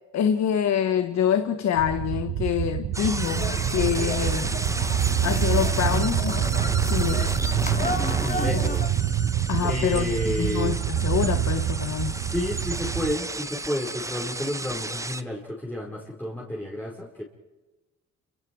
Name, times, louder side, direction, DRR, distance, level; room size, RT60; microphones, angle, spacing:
voice 1, 0.1-4.6 5.2-6.4 6.8-7.4 8.5-8.7 9.5-12.1, left 9 dB, 65° left, 1.3 m, -26 dB
sound 1, 1.8-13.2, right 11 dB, 60° right, 1.3 m, -26 dB
sound 2, 2.9-15.2, right 2 dB, 10° right, 1.0 m, -34 dB
sound 3, 3.2-8.9, left 3 dB, 25° left, 2.6 m, -33 dB
voice 2, 8.1-8.8 9.6-10.7 12.0-17.2, left 1 dB, 5° left, 5.1 m, -31 dB
29.0 x 27.0 x 4.8 m
cardioid pair, 90°, 30 cm